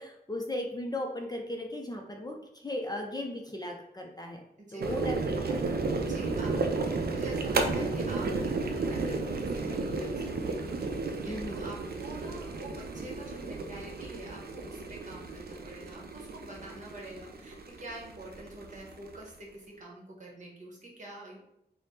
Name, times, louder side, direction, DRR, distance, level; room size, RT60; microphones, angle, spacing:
voice 1, 0.0-4.4 4.7-5.9 11.3-11.7, left 1 dB, 25° left, 2 dB, 0.4 m, -37 dB
voice 2, 4.6-5.2 5.6-10.6 11.0-21.4, right 2 dB, 45° right, -3 dB, 1.1 m, -46 dB
sound 1, 4.8-19.3, right 3 dB, 65° right, 0.4 m, -33 dB
3.3 x 2.0 x 4.1 m, 0.82 s
wide cardioid pair, 85°, 17 cm